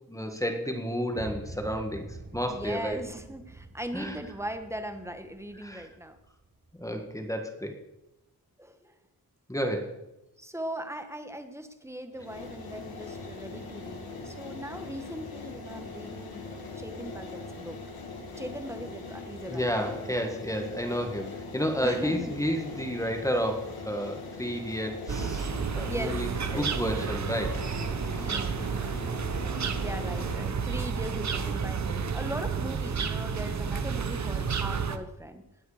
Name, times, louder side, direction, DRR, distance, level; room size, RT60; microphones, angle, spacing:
voice 1, 0.1-2.1 2.3-3.0 3.9-4.2 5.6-5.9 6.8-7.8 9.5-9.9 19.5-27.6 28.2-28.3, equal, 10° left, 4 dB, 1.6 m, -31 dB
sound 1, 1.1-7.3, right 2 dB, 30° right, 1.4 m, -46 dB
voice 2, 2.5-6.2 8.6-8.9 10.4-17.8 18.4-20.1 21.8-22.3 25.9-26.7 28.2-28.7 29.5-35.4, right 1 dB, 5° right, 7 dB, 1.3 m, -39 dB
sound 2, 12.1-30.4, left 3 dB, 80° left, 2.4 m, -41 dB
sound 3, 25.1-35.0, right 6 dB, 50° right, 0.9 m, -31 dB
19.0 x 8.0 x 5.0 m, 0.94 s
wide cardioid pair, 115°, 37 cm